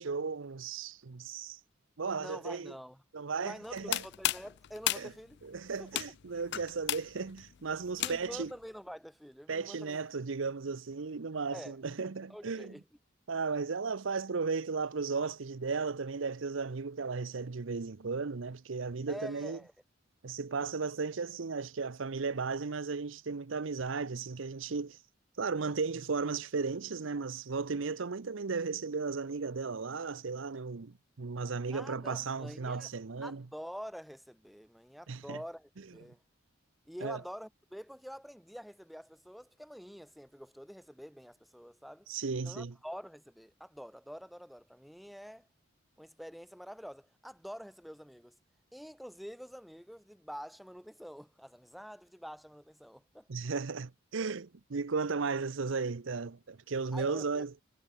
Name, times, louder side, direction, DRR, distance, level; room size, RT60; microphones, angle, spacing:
voice 1, 0.0-1.6 2.0-2.7 3.1-4.0 5.0-5.1 5.4-8.5 9.5-12.7 13.3-19.6 20.2-25.0 25.4-33.4 35.1-35.4 37.0-37.2 42.1-42.7 53.3-57.5, right 4 dB, 70° right, 0.7 m, -35 dB
voice 2, 2.2-3.0 3.4-5.4 5.8-5.9 8.0-10.0 11.5-11.8 12.3-12.8 19.1-19.7 31.7-32.9 33.2-36.2 36.9-42.1 42.4-45.5 46.0-48.4 48.7-53.3 56.9-57.4, equal, ahead, 2.7 m, -47 dB
sound 1, 3.6-8.5, left 14 dB, 55° left, 0.4 m, -35 dB
head